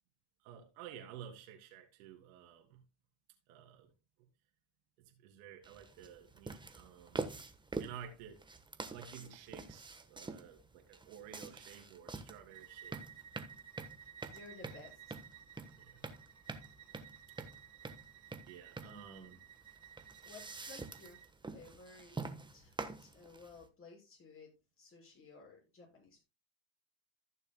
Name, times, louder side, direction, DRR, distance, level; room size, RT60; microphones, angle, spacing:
voice 1, 0.4-2.8 3.5-3.9 5.1-7.3 7.8-8.4 8.9-12.9 15.8-16.0 18.4-19.4, right 9 dB, 85° right, 2.9 m, -52 dB
sound 1, 5.6-23.7, right 3 dB, 10° right, 1.2 m, -46 dB
Bowed string instrument, 12.5-21.3, right 10 dB, 45° right, 2.1 m, -56 dB
voice 2, 14.0-15.2 18.8-19.4 20.2-21.2 21.5-24.5 24.8-26.2, left 3 dB, 30° left, 6.6 m, -56 dB
15.5 x 6.9 x 2.3 m
supercardioid pair, 110°, 40 cm